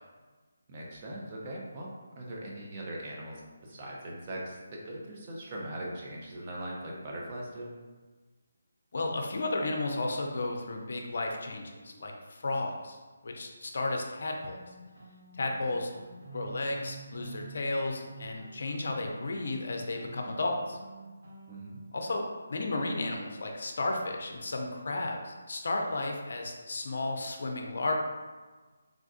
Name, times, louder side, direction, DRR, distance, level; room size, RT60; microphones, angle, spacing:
voice 1, 0.7-1.9 2.1-7.7 21.5-21.8, right 1 dB, 35° right, -3 dB, 0.7 m, -40 dB
voice 2, 8.9-13.0 13.2-14.5 15.3-15.9 16.3-20.8 21.9-22.2 22.5-28.0, left 2 dB, 60° left, 2 dB, 0.5 m, -33 dB
sound 1, 14.4-21.9, right 3 dB, 65° right, 0.9 m, -48 dB
3.7 x 2.4 x 2.4 m, 1.3 s
figure-of-eight pair, 155°, 0 cm